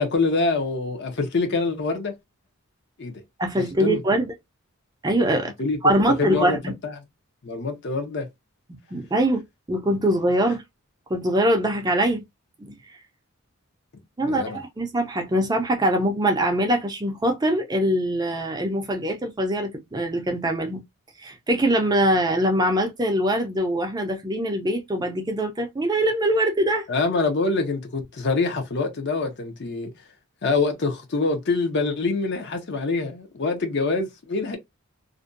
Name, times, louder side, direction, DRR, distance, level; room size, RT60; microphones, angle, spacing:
voice 1, 0.0-2.1 3.0-3.1 3.8-4.0 5.6-5.8 6.2-6.9 7.4-8.3 14.2-14.6 26.9-29.9 30.4-34.6, left 3 dB, 50° left, 0.6 m, -25 dB
voice 2, 3.4-4.3 5.0-5.5 5.8-6.7 8.9-9.4 9.7-10.6 11.1-12.2 12.6-12.8 14.2-20.8 21.2-26.9, right 1 dB, 20° right, 0.4 m, -23 dB
2.5 x 2.1 x 2.5 m
head